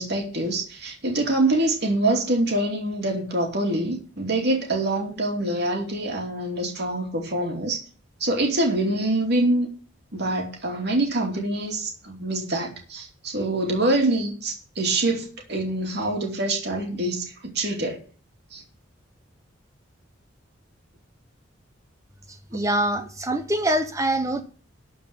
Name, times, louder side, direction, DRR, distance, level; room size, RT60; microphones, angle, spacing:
voice 1, 0.0-7.8 8.2-9.7 10.1-18.0 18.5-18.6, right 2 dB, 55° right, 2.8 m, -25 dB
voice 2, 22.5-24.4, right 1 dB, 15° right, 1.3 m, -24 dB
12.5 x 5.0 x 8.2 m
head